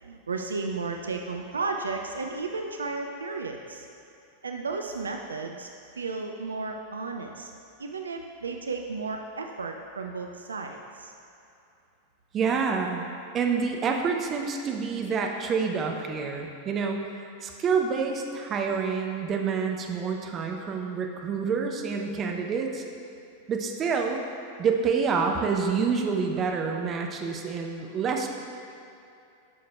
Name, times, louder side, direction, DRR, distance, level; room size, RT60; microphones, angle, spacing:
voice 1, 0.0-3.9 4.4-5.7 5.9-7.5 7.8-11.1, right 4 dB, 75° right, 4 dB, 0.3 m, -33 dB
voice 2, 12.3-13.1 13.3-17.1 17.4-22.8 23.5-24.2 24.6-28.3, right 5 dB, 30° right, 2 dB, 0.7 m, -27 dB
9.8 x 6.5 x 2.3 m, 2.7 s
figure-of-eight pair, 90°, 0 cm